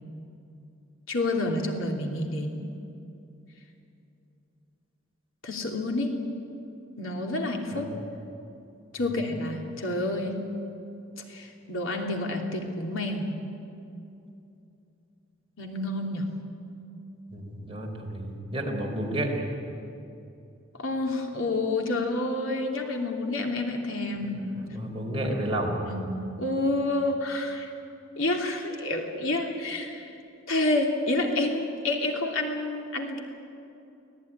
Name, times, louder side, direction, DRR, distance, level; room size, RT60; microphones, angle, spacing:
voice 1, 1.1-2.6 5.4-6.2 7.0-7.9 8.9-10.5 11.3-13.3 15.6-16.3 20.8-24.4 25.2-25.3 25.8-27.7 28.2-30.1 30.5-33.2, left 2 dB, 80° left, 2 dB, 3.0 m, -29 dB
voice 2, 17.3-19.5 24.6-25.8, right 1 dB, 30° right, 0 dB, 4.1 m, -31 dB
24.5 x 18.0 x 9.9 m, 2.7 s
head